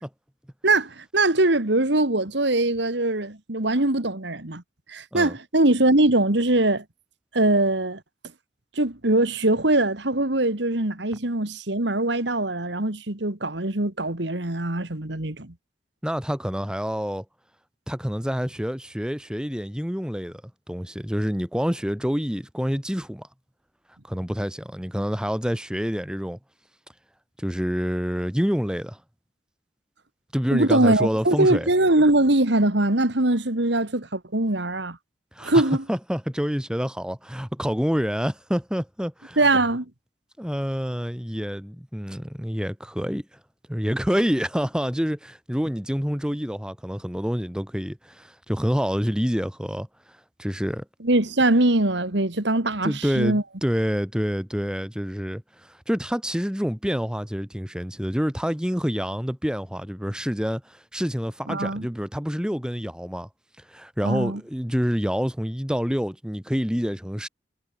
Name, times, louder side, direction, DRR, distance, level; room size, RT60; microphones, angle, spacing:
voice 1, 0.6-4.6 4.9-6.8 7.3-8.0 8.8-15.5 30.5-35.0 35.4-35.8 39.4-39.9 51.0-53.4 61.5-61.9 64.0-64.4, right 2 dB, 65° right, 2.2 m, -22 dB
voice 2, 16.0-17.2 17.9-20.4 20.7-23.3 24.1-26.4 27.4-29.0 30.3-31.7 35.3-35.6 35.9-39.4 40.4-43.2 43.7-49.9 50.4-50.8 52.8-63.3 63.7-67.3, equal, 5° right, 1.8 m, -27 dB
head